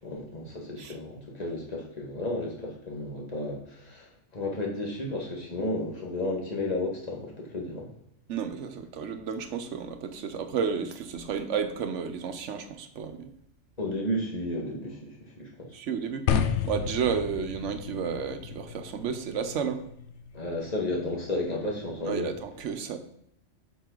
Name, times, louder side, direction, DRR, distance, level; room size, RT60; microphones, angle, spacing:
voice 1, 0.0-7.9 13.8-15.7 20.3-22.3, left 1 dB, 35° left, -1 dB, 1.7 m, -33 dB
voice 2, 8.3-13.3 15.7-19.8 22.1-23.0, right 6 dB, 80° right, 9 dB, 1.1 m, -32 dB
sound 1, 16.3-22.4, left 7 dB, 75° left, 0.9 m, -34 dB
7.4 x 5.8 x 3.9 m, 0.72 s
omnidirectional pair, 1.2 m